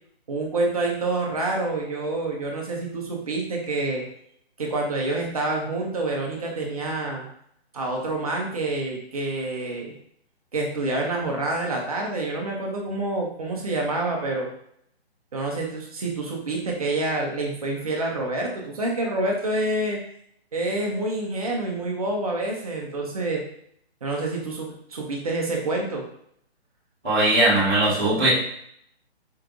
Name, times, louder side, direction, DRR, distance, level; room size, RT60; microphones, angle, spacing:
voice 1, 0.3-4.1 4.6-7.3 7.7-9.9 10.5-14.5 15.3-20.0 20.5-23.4 24.0-26.1, right 2 dB, 35° right, -1 dB, 0.9 m, -27 dB
voice 2, 27.0-28.3, right 1 dB, ahead, -25 dB, 0.6 m, -19 dB
4.6 x 3.3 x 2.5 m, 0.68 s
hypercardioid pair, 170°, 33 cm